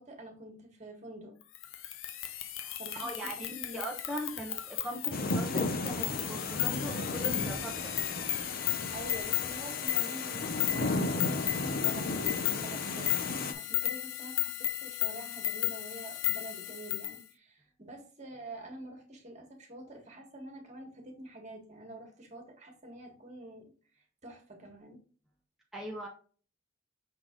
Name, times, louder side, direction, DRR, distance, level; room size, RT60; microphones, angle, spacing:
voice 1, 0.0-1.3 2.8-3.8 8.9-25.0, right 1 dB, 35° right, 2 dB, 1.7 m, -47 dB
sound 1, 1.5-17.2, left 14 dB, 90° left, 0.6 m, -35 dB
voice 2, 2.6-7.9 25.7-26.1, right 1 dB, ahead, -4 dB, 0.9 m, -40 dB
sound 2, 5.1-13.5, left 3 dB, 50° left, 0.7 m, -34 dB
6.4 x 4.0 x 3.7 m, 0.40 s
head